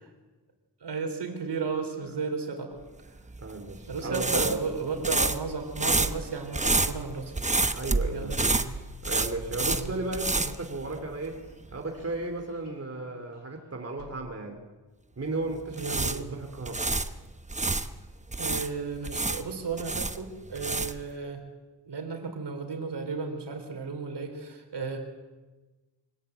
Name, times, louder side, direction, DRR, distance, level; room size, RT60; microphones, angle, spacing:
voice 1, 0.8-2.8 3.9-7.3 8.1-8.5 9.6-10.0 15.8-16.3 18.4-21.4 21.9-25.0, right 5 dB, 65° right, 5 dB, 3.8 m, -34 dB
sound 1, 3.3-11.4 11.6-11.8 15.5-17.9 18.3-21.1, right 3 dB, 15° right, 1.0 m, -29 dB
voice 2, 3.4-4.6 7.7-8.4 9.0-11.4 11.7-14.6 15.2-16.8, right 2 dB, 35° right, 3 dB, 2.8 m, -34 dB
sound 2, 7.3-10.6 11.3-11.6 11.9-12.1 12.4-12.8 13.3-13.4 14.0-14.2, left 7 dB, 70° left, 2.6 m, -50 dB
24.0 x 17.5 x 8.0 m, 1.2 s
wide cardioid pair, 100°, 43 cm